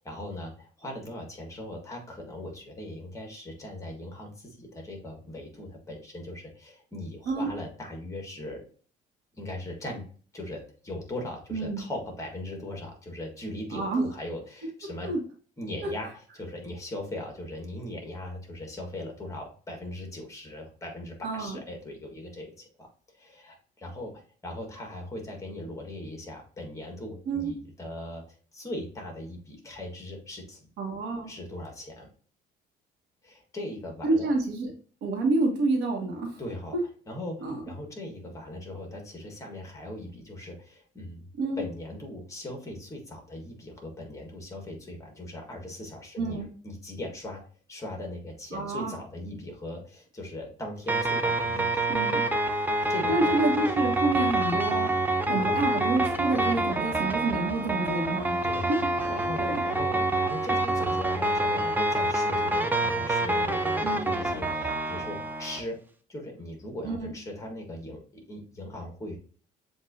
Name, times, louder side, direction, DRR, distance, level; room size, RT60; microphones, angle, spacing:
voice 1, 0.0-8.6 9.4-10.0 10.3-15.1 15.6-22.9 23.1-30.7 31.2-32.1 33.2-34.3 36.4-36.8 37.1-41.2 41.6-47.4 47.7-51.8 52.6-53.3 55.3-55.6 58.4-58.7 59.1-65.8 66.1-69.2, left 1 dB, 20° left, 2 dB, 1.5 m, -39 dB
voice 2, 11.5-11.8 13.7-14.0 15.0-15.2 21.2-21.6 27.3-27.5 30.8-31.3 34.0-34.7 35.0-36.4 37.4-37.6 41.4-41.6 46.2-46.5 48.5-48.9 51.9-52.2 53.1-54.9 55.3-58.4 59.4-59.6 63.8-64.1 66.8-67.1, right 2 dB, 90° right, 1 dB, 1.4 m, -28 dB
sound 1, 50.9-65.6, right 2 dB, 10° right, 0.6 m, -27 dB
7.4 x 2.6 x 2.6 m, 0.42 s
cardioid pair, 110°, 17 cm